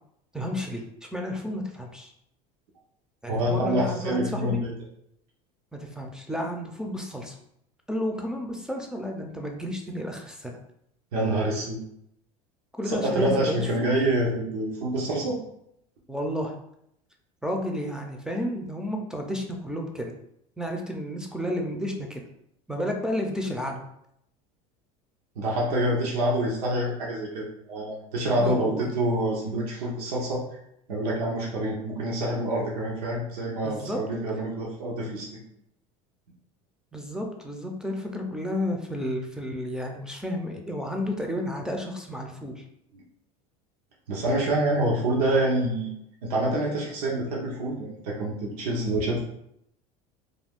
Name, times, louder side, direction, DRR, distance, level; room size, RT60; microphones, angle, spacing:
voice 1, 0.3-2.1 3.2-4.6 5.7-7.4 7.9-10.6 12.8-13.9 16.1-16.5 17.4-20.1 20.6-22.2 22.7-23.8 28.4-28.8 33.6-34.0 36.9-42.6, equal, 5° right, 1 dB, 0.4 m, -31 dB
voice 2, 3.3-4.7 11.1-11.8 12.9-15.4 25.4-30.4 30.9-35.3 42.9-43.0 44.1-45.9 46.2-49.2, right 1 dB, 90° right, -3 dB, 0.8 m, -26 dB
2.5 x 2.3 x 3.5 m, 0.76 s
supercardioid pair, 105°, 19 cm